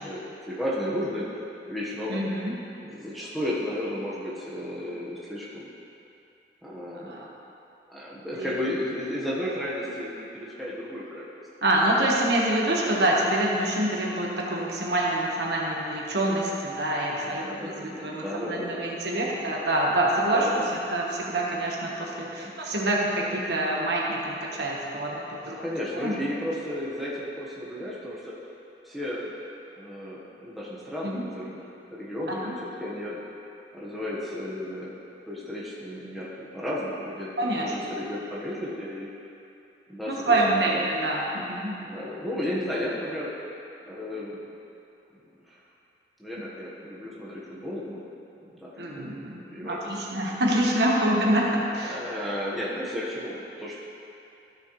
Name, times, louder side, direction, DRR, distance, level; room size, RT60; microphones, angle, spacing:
voice 1, 0.0-2.2 2.8-5.7 6.6-7.1 7.9-11.3 17.2-18.9 19.2-19.6 20.2-20.7 22.4-22.6 25.4-28.3 28.8-29.2 29.8-31.6 31.9-33.2 33.7-34.9 35.2-39.1 39.9-40.9 41.8-43.3 43.9-44.4 45.5-45.6 46.2-48.1 48.4-50.4 51.8-53.8, left 1 dB, ahead, -8 dB, 1.3 m, -34 dB
voice 2, 2.1-2.5 6.9-7.3 8.3-8.5 11.6-20.6 20.9-25.6 26.0-26.2 31.0-31.2 32.3-32.6 37.4-37.7 40.1-41.8 48.8-52.0, right 1 dB, 75° right, -3 dB, 1.3 m, -26 dB
13.5 x 6.5 x 3.2 m, 2.8 s
head